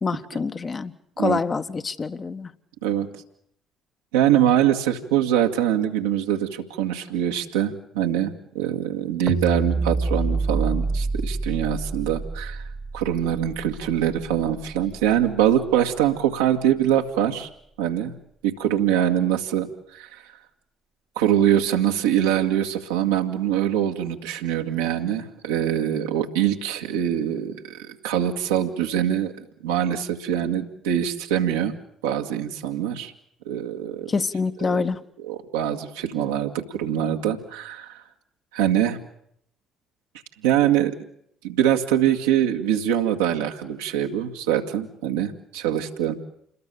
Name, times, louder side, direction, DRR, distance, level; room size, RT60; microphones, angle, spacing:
voice 1, 0.0-2.5 34.1-35.0, left 4 dB, 35° left, 10 dB, 1.4 m, -26 dB
voice 2, 4.1-12.6 12.9-17.5 17.8-18.1 18.4-20.2 21.2-27.6 28.0-29.3 29.6-31.7 32.0-33.1 33.5-34.1 34.6-34.8 35.3-38.0 38.5-39.0 40.4-40.9 41.4-46.1, right 10 dB, 80° right, 2 dB, 1.9 m, -23 dB
sound 1, 9.3-15.6, right 3 dB, 25° right, 1.4 m, -28 dB
28.0 x 21.5 x 7.0 m, 0.71 s
hypercardioid pair, 55°, 0 cm